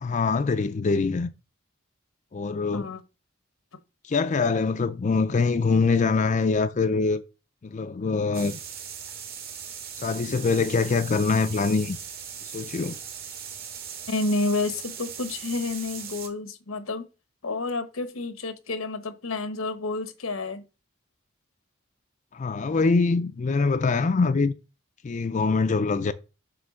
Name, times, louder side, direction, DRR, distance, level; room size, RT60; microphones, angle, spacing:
voice 1, 0.0-1.3 2.3-2.9 4.0-7.2 7.6-8.6 9.9-12.0 12.5-13.0 22.3-24.5 25.0-26.1, left 4 dB, 35° left, 0.4 m, -24 dB
sound 1, 8.3-16.3, right 7 dB, 50° right, 1.7 m, -39 dB
voice 2, 14.1-17.1 17.4-20.6, left 3 dB, 90° left, 1.1 m, -30 dB
7.7 x 3.2 x 6.3 m
head